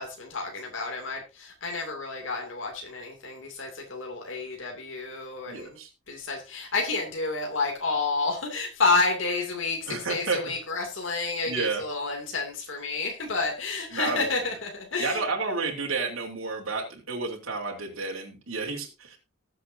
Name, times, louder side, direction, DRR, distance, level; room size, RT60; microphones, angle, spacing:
voice 1, 0.0-5.8 6.1-15.2, left 3 dB, 65° left, 1 dB, 2.6 m, -30 dB
voice 2, 5.5-5.9 9.9-10.4 11.5-11.8 13.9-14.3 15.0-19.2, right 4 dB, 85° right, -1 dB, 3.2 m, -31 dB
20.0 x 7.7 x 2.7 m, 0.28 s
head